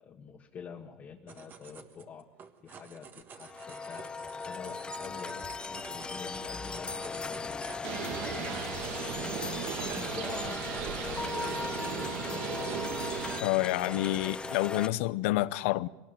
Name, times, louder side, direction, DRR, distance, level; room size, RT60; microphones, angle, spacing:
voice 1, 0.0-2.3 2.6-4.1 4.4-8.6 9.1-12.8, left 6 dB, 30° left, 1.6 m, -46 dB
sound 1, 1.3-14.6, right 6 dB, 30° right, 1.5 m, -51 dB
sound 2, 3.4-14.9, left 4 dB, 15° left, 0.8 m, -38 dB
Bird, 7.8-13.4, right 10 dB, 60° right, 1.6 m, -37 dB
voice 2, 13.4-15.9, left 17 dB, 75° left, 0.8 m, -28 dB
22.5 x 18.5 x 9.1 m
supercardioid pair, 145°, 7 cm